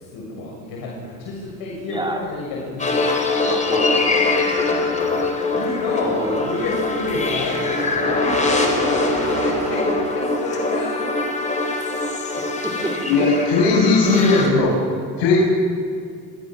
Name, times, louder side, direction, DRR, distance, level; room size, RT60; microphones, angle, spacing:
voice 1, 0.1-3.0 4.7-7.7 8.0-11.1, left 2 dB, 60° left, -3 dB, 7.1 m, -29 dB
voice 2, 1.9-2.2 3.4-5.6 6.0-6.4 12.6-12.9 14.1-14.4, right 2 dB, 10° right, 0 dB, 4.3 m, -30 dB
sound 1, 2.1-2.2 2.4-9.8, right 3 dB, 45° right, 7.1 m, -33 dB
sound 2, 2.8-14.5, left 3 dB, 20° left, 4.2 m, -23 dB
voice 3, 13.1-14.7 15.2-15.4, left 3 dB, 85° left, -3 dB, 7.0 m, -17 dB
30.0 x 22.5 x 6.3 m, 2.3 s
cardioid pair, 145°, 40 cm